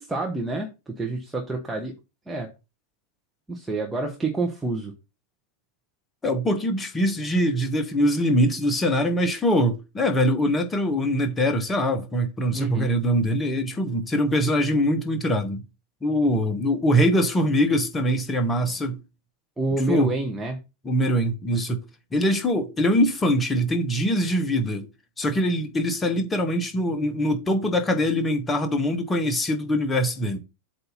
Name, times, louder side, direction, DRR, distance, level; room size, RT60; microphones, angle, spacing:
voice 1, 0.0-1.9 2.3-2.5 3.5-4.9 12.5-12.9 19.6-20.6, right 2 dB, 5° right, 1.1 m, -28 dB
voice 2, 6.2-15.6 16.0-19.0 19.9-20.1 20.8-21.8 22.1-24.9 25.2-30.4, equal, 15° left, 1.1 m, -23 dB
7.9 x 2.8 x 5.6 m
figure-of-eight pair, 90°, 0 cm